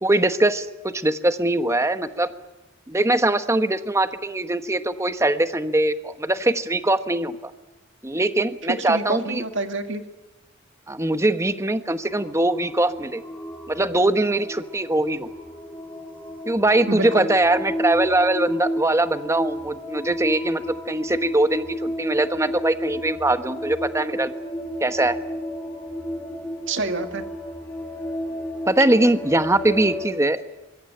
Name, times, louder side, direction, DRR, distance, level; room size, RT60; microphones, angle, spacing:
voice 1, 0.0-2.3 2.9-7.5 8.0-9.4 10.9-13.2 13.7-15.3 16.5-24.3 24.8-25.2 28.7-30.4, right 1 dB, 15° right, 10 dB, 1.1 m, -22 dB
voice 2, 8.7-10.0 16.9-17.3 26.7-27.2, right 2 dB, 65° right, 7 dB, 2.2 m, -27 dB
sound 1, 12.1-30.1, equal, 10° left, 6.4 m, -32 dB
24.5 x 22.0 x 8.9 m, 1.1 s
head